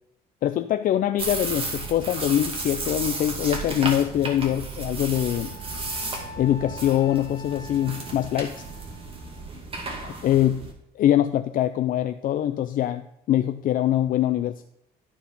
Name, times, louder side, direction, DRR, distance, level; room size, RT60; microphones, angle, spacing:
voice 1, 0.4-5.5 6.4-8.5 10.0-10.7 11.0-14.6, left 12 dB, 55° left, 9 dB, 0.5 m, -23 dB
sound 1, 1.2-10.7, right 3 dB, 35° right, 2.2 m, -33 dB
Wind instrument woodwind instrument, 5.1-9.5, left 1 dB, 20° left, 1.4 m, -45 dB
13.5 x 4.7 x 5.3 m, 0.76 s
cardioid pair, 110°, 17 cm